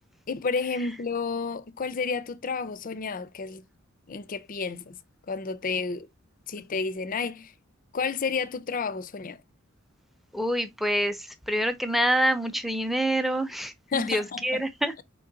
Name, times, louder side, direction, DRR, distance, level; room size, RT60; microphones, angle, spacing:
voice 1, 0.3-3.6 4.1-5.0 5.3-6.1 6.5-7.5 7.9-9.4 13.9-14.6, left 5 dB, 40° left, 0.5 m, -31 dB
voice 2, 10.3-14.9, equal, ahead, 0.6 m, -26 dB
5.1 x 3.8 x 2.7 m
head